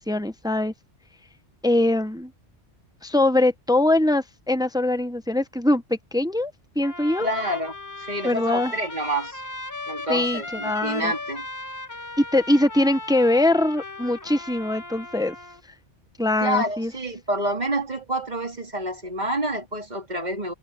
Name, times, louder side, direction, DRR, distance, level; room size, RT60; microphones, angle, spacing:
voice 1, 0.1-0.7 1.6-2.3 3.0-7.3 8.2-8.7 10.1-11.1 12.2-15.4 16.2-16.9, left 1 dB, 5° right, 0.7 m, -22 dB
Trumpet, 6.8-15.6, left 2 dB, 15° left, 1.0 m, -37 dB
voice 2, 7.2-9.4 9.9-11.4 16.4-20.5, right 1 dB, 40° right, 3.1 m, -28 dB
omnidirectional pair, 1.2 m